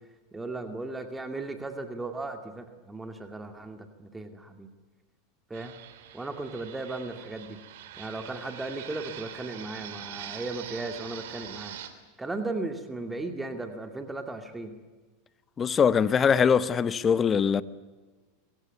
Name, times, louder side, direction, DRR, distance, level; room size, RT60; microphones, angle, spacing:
voice 1, 0.3-4.7 5.5-5.7 6.1-7.6 8.0-11.8 12.2-14.7, right 2 dB, 10° right, 2.4 m, -36 dB
Fixed-wing aircraft airplane, 5.5-11.9, right 11 dB, 75° right, 3.0 m, -43 dB
voice 2, 15.6-17.6, left 7 dB, 25° left, 1.0 m, -22 dB
24.0 x 17.0 x 9.5 m
hypercardioid pair, 115°, 0 cm